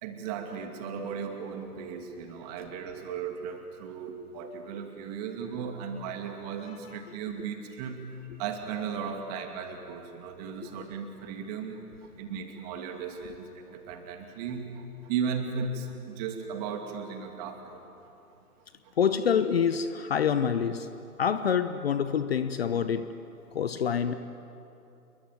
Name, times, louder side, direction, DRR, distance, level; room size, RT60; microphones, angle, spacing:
voice 1, 0.0-8.0 8.4-11.8 12.2-14.7 15.1-17.8, right 6 dB, 25° right, 4 dB, 2.6 m, -36 dB
voice 2, 19.0-20.9 21.2-23.1 23.5-24.2, left 7 dB, 40° left, 11 dB, 0.9 m, -26 dB
28.5 x 22.5 x 9.1 m, 2.8 s
figure-of-eight pair, 135°, 47 cm